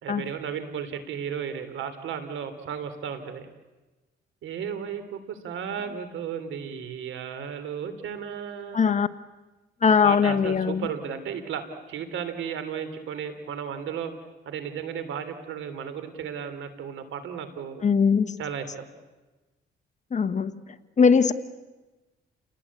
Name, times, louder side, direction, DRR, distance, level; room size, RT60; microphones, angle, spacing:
voice 1, 0.0-3.5 4.4-9.0 10.0-14.1 14.4-17.8 18.4-18.9, right 7 dB, 80° right, 11 dB, 3.2 m, -34 dB
voice 2, 8.7-9.1 9.8-10.9 17.8-18.4 20.1-20.5 21.0-21.3, left 6 dB, 35° left, 11 dB, 1.3 m, -20 dB
29.5 x 20.0 x 8.4 m, 1.2 s
cardioid pair, 90°, 20 cm